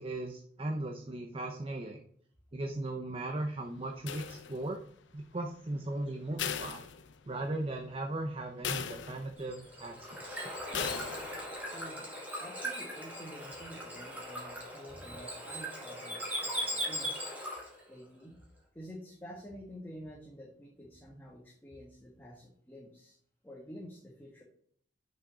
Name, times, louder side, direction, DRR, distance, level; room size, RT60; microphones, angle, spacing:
voice 1, 0.0-2.0 2.5-4.8 5.1-6.8 7.3-10.5, right 2 dB, 30° right, 4 dB, 0.6 m, -37 dB
sound 1, 4.1-4.9 6.4-7.5 7.9-8.0 8.6-9.5 10.7-11.5, left 8 dB, 75° left, 0.6 m, -38 dB
Bird / Water, 9.4-17.8, equal, 10° right, 2.2 m, -39 dB
voice 2, 11.7-17.2 17.9-18.3 18.7-23.2 23.4-24.4, equal, 10° left, -3 dB, 1.3 m, -49 dB
6.2 x 5.8 x 4.9 m, 0.62 s
head